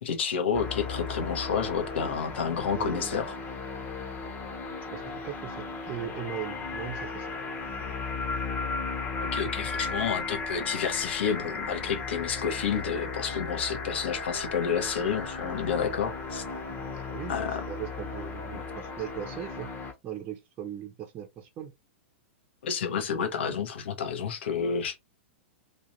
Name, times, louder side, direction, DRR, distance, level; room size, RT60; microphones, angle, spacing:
voice 1, 0.0-3.3 9.3-16.4 17.3-17.5 18.5-18.6 22.6-25.0, left 7 dB, 65° left, 1.2 m, -30 dB
sound 1, 0.5-19.9, left 4 dB, 30° left, 1.4 m, -35 dB
voice 2, 2.7-3.1 4.9-7.4 16.9-19.7 20.0-21.7, right 10 dB, 30° right, 1.1 m, -39 dB
3.3 x 3.0 x 4.1 m
figure-of-eight pair, 105°, 6 cm